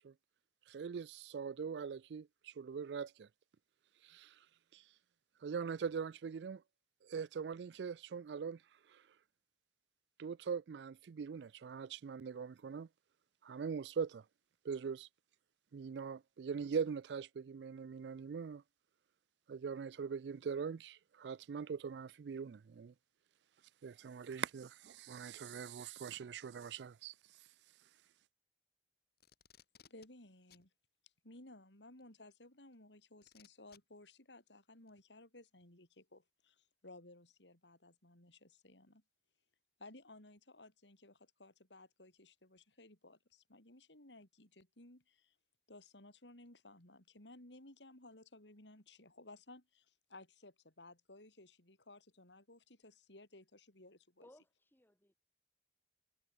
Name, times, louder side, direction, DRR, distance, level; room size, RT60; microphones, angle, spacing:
voice 1, 0.7-3.3 4.0-4.4 4.7-4.8 5.4-6.6 7.0-8.6 8.9-9.0 10.2-12.9 13.4-14.2 14.6-15.1 15.7-18.6 19.5-22.9 23.8-27.1, right 6 dB, 70° right, 0.4 m, -42 dB
Packing tape duct tape, 29.2-30.1 30.5-30.7 32.0-32.1 33.2-33.8 34.9-35.0, left 8 dB, 60° left, 3.8 m, -63 dB
voice 2, 29.9-30.7 31.0-39.0 39.8-45.4 45.7-54.3, left 2 dB, 80° left, 5.5 m, -58 dB
voice 3, 54.2-55.1, left 1 dB, 10° left, 5.5 m, -63 dB
head